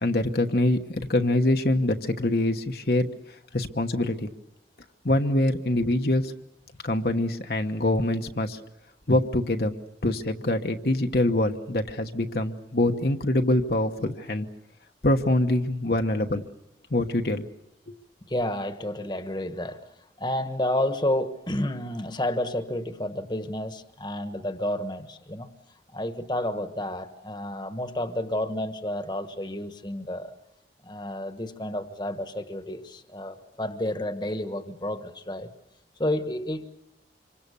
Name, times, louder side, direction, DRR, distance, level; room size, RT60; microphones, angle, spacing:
voice 1, 0.0-3.1 3.5-4.3 5.0-6.3 6.8-8.6 9.1-9.7 10.0-14.5 15.0-16.4 16.9-17.4 17.9-18.0, left 1 dB, 60° left, 4 dB, 1.1 m, -24 dB
voice 2, 18.3-19.8 20.2-25.5 25.9-30.3 30.8-35.5 36.0-36.7, left 1 dB, 25° left, 9 dB, 1.3 m, -30 dB
26.5 x 24.5 x 7.0 m, 0.82 s
head